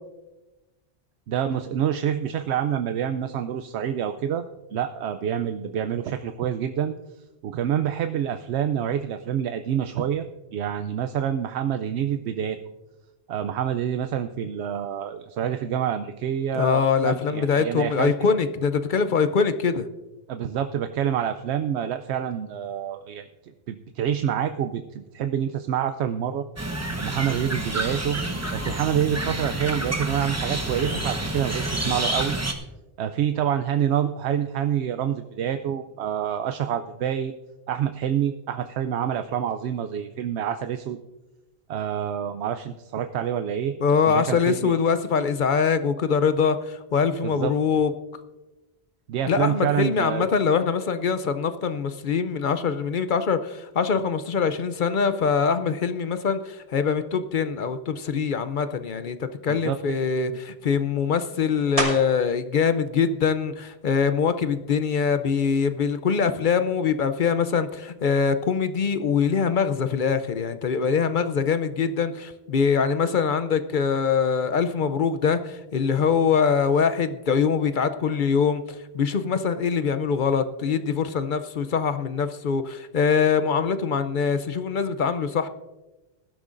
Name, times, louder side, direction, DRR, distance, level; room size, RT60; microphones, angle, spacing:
voice 1, 1.3-4.4 4.7-6.9 7.4-12.6 13.3-18.1 20.3-26.4 27.0-28.3 28.5-32.4 33.0-37.3 37.7-41.0 41.7-43.7 44.1-44.8 47.2-47.5 49.1-50.3 59.5-60.0 60.3-60.4, right 9 dB, 85° right, 9 dB, 0.8 m, -27 dB
voice 2, 16.5-19.9 43.8-47.9 49.3-85.5, left 6 dB, 55° left, 11 dB, 0.7 m, -23 dB
sound 1, 26.6-32.5, right 1 dB, 15° right, 0.9 m, -29 dB
sound 2, 61.8-62.4 62.9-67.3 67.9-73.0 73.3-79.0, right 1 dB, 35° right, 2.8 m, -38 dB
19.5 x 12.0 x 2.5 m, 1.1 s
omnidirectional pair, 1.1 m